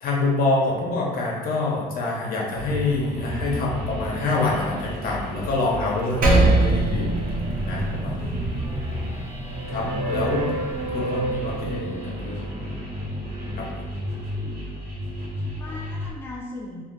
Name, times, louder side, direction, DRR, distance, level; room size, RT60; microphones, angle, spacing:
voice 1, 0.0-7.1 7.6-8.4 9.7-10.5 10.9-12.7 13.6-13.7, left 2 dB, 60° left, -2 dB, 0.8 m, -26 dB
sound 1, 2.6-16.1, equal, 70° right, 1.1 m, -31 dB
Percussion, 6.2-11.0, right 2 dB, 55° right, 0.6 m, -24 dB
voice 2, 14.2-14.7 15.2-16.8, left 2 dB, 15° left, -3 dB, 0.4 m, -40 dB
2.4 x 2.3 x 3.7 m, 1.4 s
cardioid pair, 110°, 17 cm